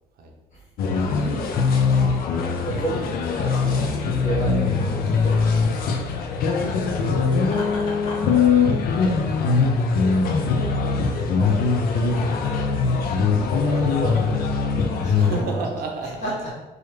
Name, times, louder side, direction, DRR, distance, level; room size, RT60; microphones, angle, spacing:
sound 1, 0.8-15.4, left 4 dB, 60° left, 0.4 m, -21 dB
voice 1, 1.0-1.5 2.6-3.1 3.4-3.9 4.2-5.9 8.9-9.2 11.0-12.2 13.5-14.4 15.0-15.7 16.2-16.5, right 2 dB, 45° left, -6 dB, 1.4 m, -32 dB
voice 2, 6.8-7.6 7.9-8.4 15.1-16.3, right 4 dB, 60° right, 1 dB, 0.6 m, -34 dB
Laughter, 7.4-8.4, left 1 dB, 25° left, 1.0 m, -36 dB
3.1 x 2.3 x 3.2 m, 1.0 s
cardioid pair, 110°, 17 cm